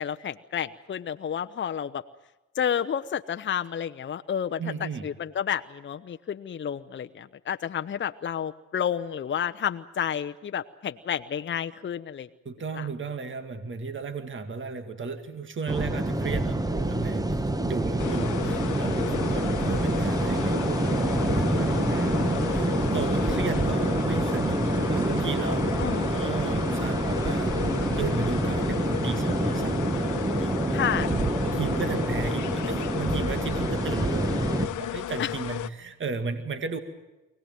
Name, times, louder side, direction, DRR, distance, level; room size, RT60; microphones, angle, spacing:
voice 1, 0.0-2.0 2.6-12.3 12.7-12.9 22.1-22.4 25.8-26.1 30.7-31.1 35.2-35.3, left 8 dB, 40° left, 8 dB, 0.8 m, -30 dB
voice 2, 4.6-5.1 12.4-17.4 17.7-27.5 27.8-30.1 30.4-30.8 31.4-36.8, right 4 dB, 40° right, 8 dB, 2.2 m, -34 dB
sound 1, 15.7-34.7, right 2 dB, 10° right, 1.4 m, -27 dB
sound 2, 18.0-35.7, left 13 dB, 80° left, 1.0 m, -34 dB
24.0 x 18.5 x 9.2 m, 1.0 s
cardioid pair, 90°, 30 cm